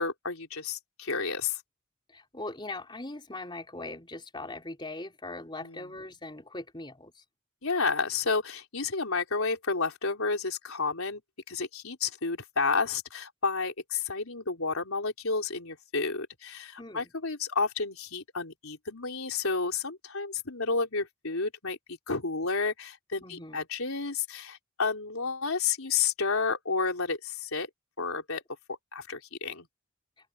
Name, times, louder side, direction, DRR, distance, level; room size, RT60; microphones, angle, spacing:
voice 1, 0.0-1.6 5.6-5.8 7.6-11.2 11.5-27.7 28.0-28.4 28.9-29.7, left 4 dB, 80° left, 3.9 m, -31 dB
voice 2, 2.1-7.2 16.8-17.1 23.2-23.6, left 2 dB, 20° left, 4.2 m, -40 dB
head